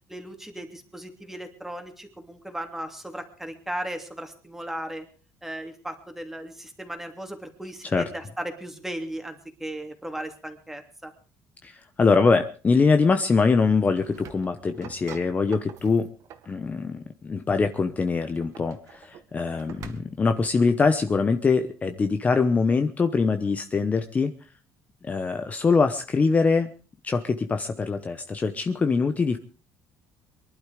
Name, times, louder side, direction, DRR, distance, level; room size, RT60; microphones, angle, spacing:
voice 1, 0.1-5.1 5.4-11.1, right 1 dB, 5° right, 5 dB, 2.9 m, -36 dB
voice 2, 11.6-16.1 16.4-24.3 25.0-26.7 27.0-29.4, left 4 dB, 25° left, 8 dB, 1.0 m, -23 dB
sound 1, 13.9-16.6 18.2-20.4, right 8 dB, 60° right, 2.0 m, -46 dB
23.5 x 12.0 x 5.0 m, 0.38 s
cardioid pair, 135°, 6 cm